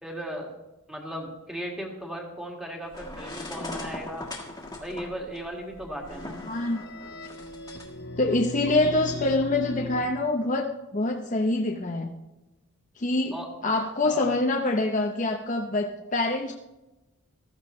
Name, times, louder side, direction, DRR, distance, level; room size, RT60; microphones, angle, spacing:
voice 1, 0.0-0.5 0.9-4.2 4.8-6.4 13.3-13.5 14.0-14.3, equal, 5° right, 0 dB, 1.9 m, -36 dB
sound 1, 2.9-7.9, left 2 dB, 15° left, 1.6 m, -39 dB
sound 2, 6.1-10.0, left 3 dB, 50° left, 1.1 m, -38 dB
voice 2, 6.5-6.8 8.2-12.1 13.0-13.4 13.6-16.6, left 2 dB, 35° left, 2 dB, 0.7 m, -25 dB
15.0 x 14.0 x 3.2 m, 1.0 s
head